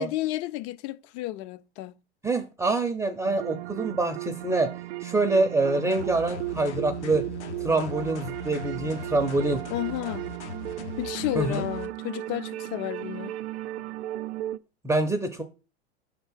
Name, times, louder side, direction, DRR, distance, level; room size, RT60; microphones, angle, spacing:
voice 1, 0.0-1.9 9.7-10.3 11.0-13.3, left 16 dB, 45° left, 0.4 m, -32 dB
voice 2, 2.2-4.7 5.0-7.2 7.6-9.6 11.3-11.7 14.8-15.4, right 2 dB, 10° right, 0.5 m, -25 dB
sound 1, 3.2-14.6, right 15 dB, 70° right, 0.5 m, -36 dB
sound 2, 5.9-11.9, left 4 dB, 85° left, 1.0 m, -40 dB
5.4 x 3.6 x 5.6 m
hypercardioid pair, 105°, 34 cm